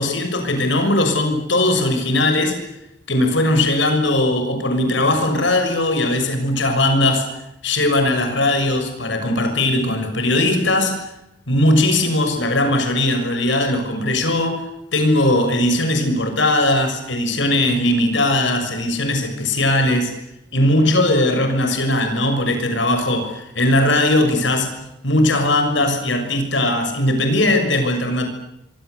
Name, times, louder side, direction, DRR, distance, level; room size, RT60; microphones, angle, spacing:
voice 1, 0.0-2.6 3.1-7.3 7.6-11.0 11.5-14.6 14.9-20.1 20.5-24.8 25.0-28.3, left 1 dB, 65° left, 6 dB, 6.6 m, -19 dB
26.0 x 24.0 x 8.2 m, 0.88 s
head